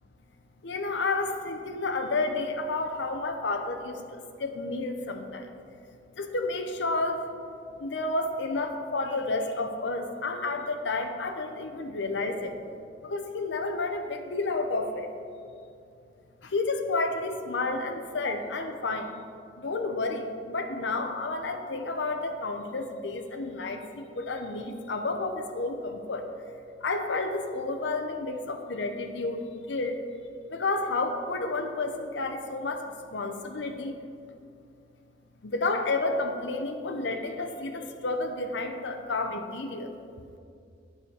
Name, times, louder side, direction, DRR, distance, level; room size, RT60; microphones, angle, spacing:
voice 1, 0.6-5.5 6.2-7.3 7.8-12.6 13.0-15.1 16.4-19.2 19.6-26.2 26.8-30.0 30.5-33.9 35.4-39.9, left 3 dB, 75° left, 5 dB, 0.7 m, -31 dB
9.4 x 4.9 x 7.2 m, 2.4 s
head